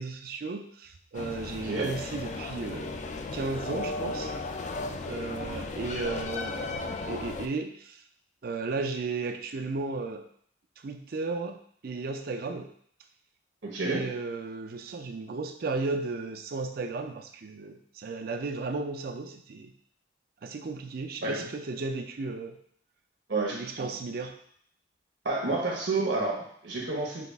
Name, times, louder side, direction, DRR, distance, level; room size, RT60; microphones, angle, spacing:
voice 1, 0.0-3.0 3.3-4.3 5.1-8.0 8.4-10.3 10.8-12.7 13.8-19.7 20.4-22.6 23.5-24.4, right 3 dB, 55° right, 6 dB, 0.4 m, -34 dB
sound 1, 1.1-7.5, left 3 dB, 40° left, 0.4 m, -35 dB
voice 2, 13.6-14.0 21.2-21.4 23.3-23.9 25.2-27.3, right 3 dB, 80° right, -2 dB, 1.2 m, -30 dB
5.9 x 2.4 x 3.4 m, 0.64 s
head